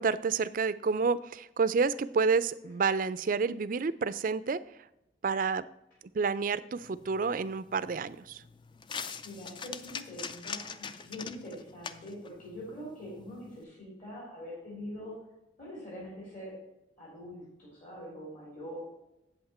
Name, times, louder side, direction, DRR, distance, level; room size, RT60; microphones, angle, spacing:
voice 1, 0.0-4.6 5.2-5.7 6.1-8.4, right 5 dB, 50° right, 15 dB, 0.4 m, -29 dB
sound 1, 6.8-13.6, left 6 dB, 25° left, 0.4 m, -44 dB
voice 2, 9.0-15.2 15.6-16.5 17.0-18.8, equal, 50° left, -6 dB, 3.4 m, -44 dB
8.1 x 8.0 x 4.2 m, 0.87 s
head